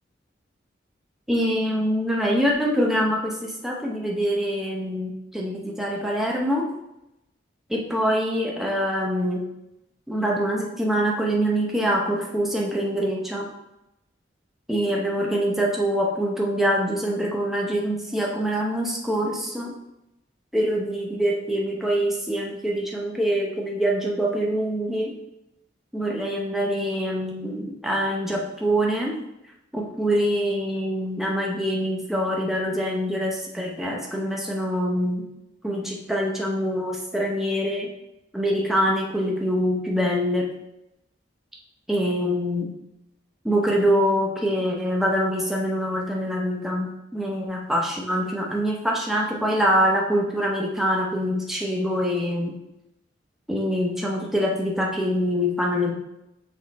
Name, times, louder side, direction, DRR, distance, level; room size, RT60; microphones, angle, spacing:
voice 1, 1.3-6.6 7.7-9.4 10.1-13.5 14.7-19.7 20.5-25.1 25.9-29.1 29.7-35.2 35.6-37.9 38.3-40.5 41.9-42.7 43.4-52.5 53.5-55.9, equal, ahead, -2 dB, 0.7 m, -24 dB
6.4 x 3.7 x 4.1 m, 0.88 s
head